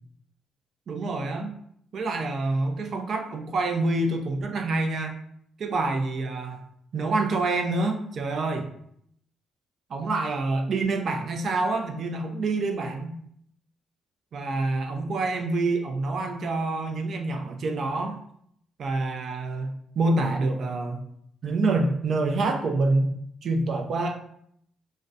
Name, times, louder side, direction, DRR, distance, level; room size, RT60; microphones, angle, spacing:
voice 1, 0.9-1.5 1.9-5.2 5.6-6.6 6.9-8.7 9.9-13.2 14.3-18.2 18.8-21.0 21.4-23.1 23.4-24.2, right 2 dB, 55° right, 4 dB, 0.4 m, -27 dB
2.3 x 2.1 x 2.5 m, 0.69 s
cardioid pair, 90°, 0 cm